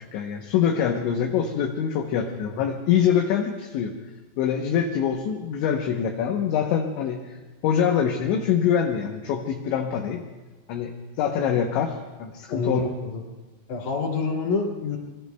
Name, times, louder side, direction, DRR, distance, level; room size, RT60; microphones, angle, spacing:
voice 1, 0.1-3.9 4.4-7.2 7.6-10.2 10.7-10.9 11.2-12.9, left 8 dB, 75° left, 2 dB, 3.0 m, -24 dB
voice 2, 12.5-13.2 13.7-15.0, left 4 dB, 45° left, 0 dB, 3.4 m, -27 dB
26.5 x 22.5 x 2.3 m, 1.2 s
omnidirectional pair, 5.8 m